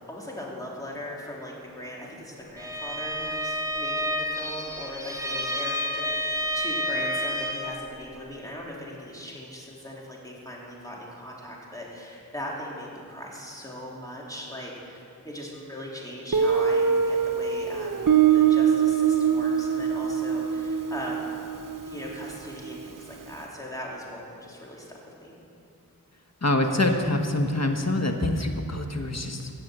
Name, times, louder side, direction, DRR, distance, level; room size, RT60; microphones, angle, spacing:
voice 1, 0.1-18.0 18.3-21.3 21.9-25.3, left 1 dB, 10° left, -4 dB, 3.3 m, -39 dB
Bowed string instrument, 2.6-7.8, equal, 10° right, 1.8 m, -30 dB
Guitar, 16.3-23.0, right 8 dB, 65° right, 0.8 m, -24 dB
voice 2, 26.4-29.5, left 2 dB, 50° left, 4 dB, 1.3 m, -25 dB
17.5 x 6.3 x 7.9 m, 2.5 s
wide cardioid pair, 45°, 34 cm